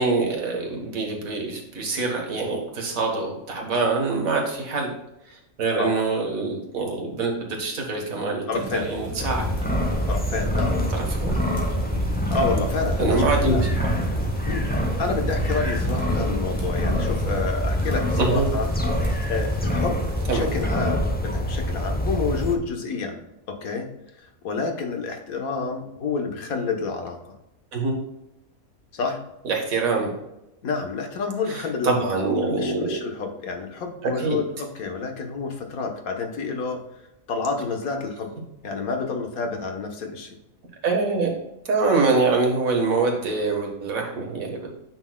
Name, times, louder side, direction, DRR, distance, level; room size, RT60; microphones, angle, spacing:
voice 1, 0.0-4.9 5.3-9.5 10.9-11.4 13.0-13.9 18.2-18.5 20.3-20.4 27.7-27.9 29.4-30.2 31.5-33.0 34.2-34.4 40.8-41.3 41.7-44.7, right 3 dB, 75° right, 1 dB, 1.9 m, -24 dB
voice 2, 8.5-8.9 10.1-10.7 12.3-13.7 14.4-14.7 15.0-18.7 18.9-20.0 20.3-23.2 23.5-23.9 24.2-27.3 28.9-29.2 30.6-36.8 37.3-38.3 38.6-40.4, left 4 dB, 90° left, 3 dB, 1.6 m, -29 dB
sound 1, 8.5-20.6, right 2 dB, 10° right, 1.5 m, -36 dB
sound 2, 9.2-22.6, equal, 10° left, 0.5 m, -25 dB
8.8 x 6.1 x 2.3 m, 0.89 s
omnidirectional pair, 1.5 m